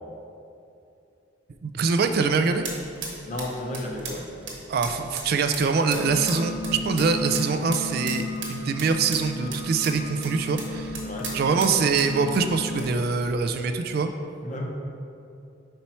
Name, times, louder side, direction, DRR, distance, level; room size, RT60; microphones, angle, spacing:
voice 1, 1.6-2.6 4.7-11.0 11.3-14.1, right 4 dB, 50° right, 7 dB, 0.3 m, -24 dB
sound 1, 1.9-13.5, right 3 dB, 75° right, 1.2 m, -40 dB
voice 2, 3.2-4.3 11.0-11.4 14.4-14.7, left 1 dB, 40° left, 0 dB, 0.8 m, -33 dB
sound 2, 5.8-12.9, left 1 dB, 70° left, 0.5 m, -34 dB
5.4 x 4.5 x 4.3 m, 2.7 s
head